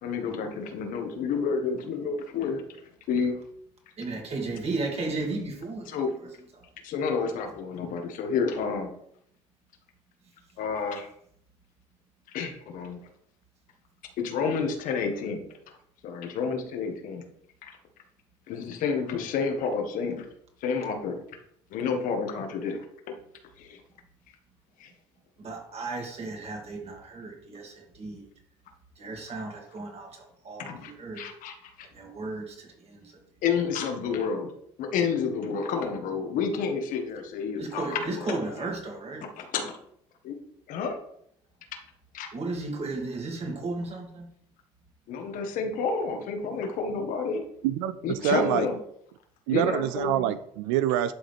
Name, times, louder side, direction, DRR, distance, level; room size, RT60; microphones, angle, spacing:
voice 1, 0.0-2.6 3.1-3.4 5.9-6.1 6.8-8.9 10.6-11.1 12.3-13.0 14.2-15.8 16.0-17.2 17.6-17.8 18.5-20.2 20.6-21.2 21.7-23.2 23.6-23.8 24.8-24.9 30.6-31.9 33.4-34.5 34.8-38.7 39.2-39.8 40.2-40.4 40.7-41.0 42.1-42.3 45.1-47.4 48.0-48.8 49.5-50.3, left 5 dB, 65° left, 1.5 m, -30 dB
voice 2, 4.0-6.3 6.6-6.7 25.4-28.3 29.0-31.3 31.8-33.1 37.6-39.3 42.3-44.3, right 3 dB, 45° right, 2.2 m, -35 dB
voice 3, 47.6-48.7 49.5-51.1, right 11 dB, 75° right, 0.4 m, -26 dB
11.5 x 3.9 x 3.4 m
hypercardioid pair, 65°, 15 cm